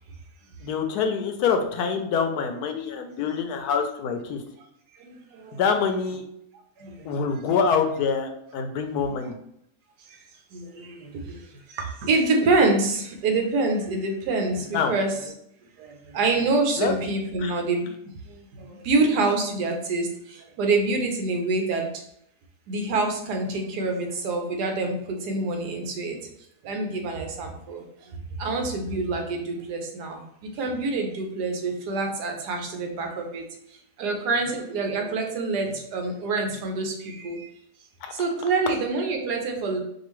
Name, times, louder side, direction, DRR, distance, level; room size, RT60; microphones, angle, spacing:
voice 1, 0.6-4.4 5.5-6.2 7.0-9.4 14.7-14.9 16.8-16.9 17.4-17.5 38.0-38.1, left 6 dB, 75° left, 5 dB, 1.1 m, -25 dB
voice 2, 5.0-5.6 6.8-7.4 10.1-10.2 10.5-15.3 15.8-17.9 18.3-21.9 22.7-26.2 26.6-33.4 34.0-37.5 38.1-39.8, right 3 dB, 80° right, 3 dB, 1.3 m, -26 dB
5.1 x 2.5 x 3.1 m, 0.74 s
omnidirectional pair, 1.7 m